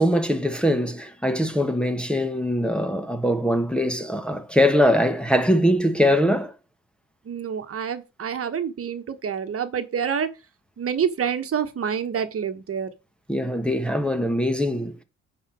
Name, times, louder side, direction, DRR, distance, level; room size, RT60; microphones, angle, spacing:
voice 1, 0.0-6.5 13.3-15.0, equal, 5° left, 1.3 m, -22 dB
voice 2, 7.2-10.3 10.8-12.9, right 7 dB, 50° right, 1.4 m, -27 dB
9.8 x 4.4 x 6.3 m
cardioid pair, 90°, 30 cm